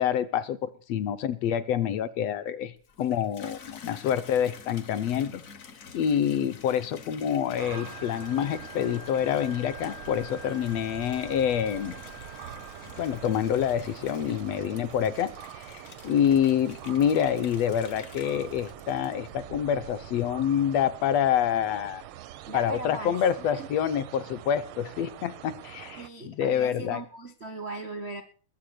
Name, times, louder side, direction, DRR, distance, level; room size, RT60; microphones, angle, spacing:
voice 1, 0.0-5.4 5.9-12.0 13.0-22.0 22.5-27.0, left 9 dB, 70° left, 11 dB, 1.9 m, -27 dB
Water tap faucet / Bathtub (filling or washing), 2.8-19.7 20.2-20.7, left 6 dB, 55° left, 0.9 m, -49 dB
sound 1, 7.6-26.1, right 12 dB, 75° right, 1.2 m, -44 dB
Wind instrument woodwind instrument, 7.7-13.5, left 8 dB, 90° left, 2.5 m, -47 dB
voice 2, 22.4-23.1 23.5-23.7 26.0-28.2, right 2 dB, 50° right, 7 dB, 0.8 m, -38 dB
21.0 x 7.8 x 6.6 m, 0.40 s
omnidirectional pair, 3.3 m